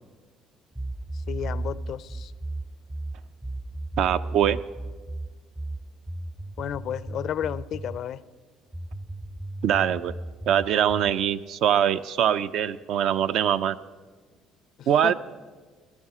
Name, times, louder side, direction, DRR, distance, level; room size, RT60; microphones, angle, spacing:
sound 1, 0.8-8.0 8.7-11.2, right 2 dB, 10° right, 0.4 m, -35 dB
voice 1, 1.3-2.3 6.6-8.2 14.8-15.1, left 10 dB, 60° left, 18 dB, 0.4 m, -32 dB
voice 2, 4.0-4.6 9.6-10.1 10.5-13.8 14.9-15.1, right 9 dB, 70° right, 12 dB, 0.5 m, -23 dB
18.0 x 11.5 x 4.9 m, 1.4 s
cardioid pair, 105°, 0 cm